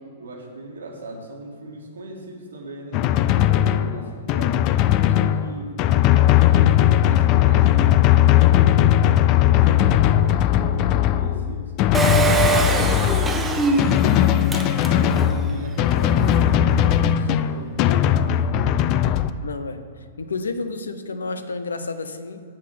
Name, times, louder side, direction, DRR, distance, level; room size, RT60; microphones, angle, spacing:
voice 1, 0.0-4.7 5.1-5.8 6.1-11.7 12.1-14.1 14.7-18.2, right 2 dB, 85° right, 0 dB, 1.9 m, -38 dB
Drum, 2.9-19.3, left 11 dB, 40° left, 0.4 m, -18 dB
voice 2, 5.9-6.3 19.4-19.8 20.2-22.4, left 3 dB, 85° left, 9 dB, 0.7 m, -31 dB
Engine, 11.9-15.4 15.9-16.0 16.2-16.3, right 4 dB, 15° right, 0.8 m, -23 dB
7.6 x 6.3 x 5.7 m, 2.3 s
hypercardioid pair, 120°, 0 cm